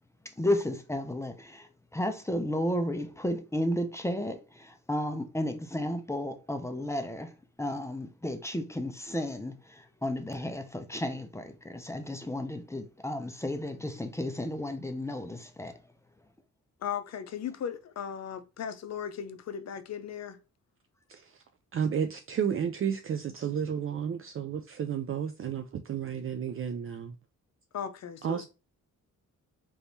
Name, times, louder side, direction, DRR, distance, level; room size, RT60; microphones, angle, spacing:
voice 1, 0.2-7.3 7.6-15.8, left 1 dB, 10° left, 0.6 m, -33 dB
voice 2, 16.8-20.4 27.7-28.5, left 8 dB, 55° left, 0.7 m, -37 dB
voice 3, 21.1-21.4 21.7-27.1 28.2-28.5, right 8 dB, 45° right, 0.4 m, -32 dB
3.4 x 3.1 x 2.7 m
cardioid pair, 90°, 32 cm